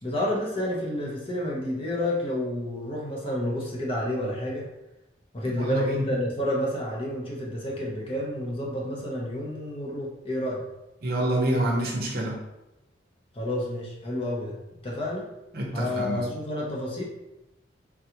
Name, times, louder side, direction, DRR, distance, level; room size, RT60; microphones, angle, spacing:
voice 1, 0.0-4.7 5.3-10.6 13.3-14.6 14.8-15.3 15.7-17.0, left 1 dB, 30° left, -2 dB, 0.6 m, -30 dB
voice 2, 5.5-6.0 11.0-12.4 15.5-16.3, right 1 dB, 50° right, -1 dB, 0.7 m, -27 dB
3.6 x 2.3 x 2.8 m, 0.94 s
head